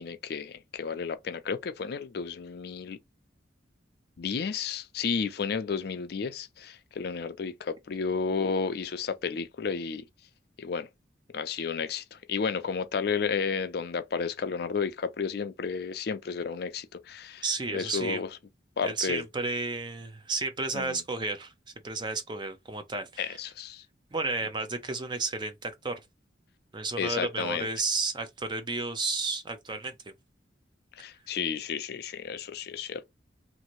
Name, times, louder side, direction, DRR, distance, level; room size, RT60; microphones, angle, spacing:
voice 1, 0.0-3.0 4.2-10.0 10.6-10.9 11.3-17.4 17.7-18.3 18.8-19.3 20.7-21.0 23.2-23.8 27.0-27.7 31.0-33.1, left 5 dB, 60° left, 0.4 m, -32 dB
voice 2, 17.4-18.2 18.8-21.5 21.8-23.4 24.1-25.9 26.7-30.1, right 3 dB, 25° right, 0.5 m, -32 dB
2.7 x 2.5 x 3.0 m
head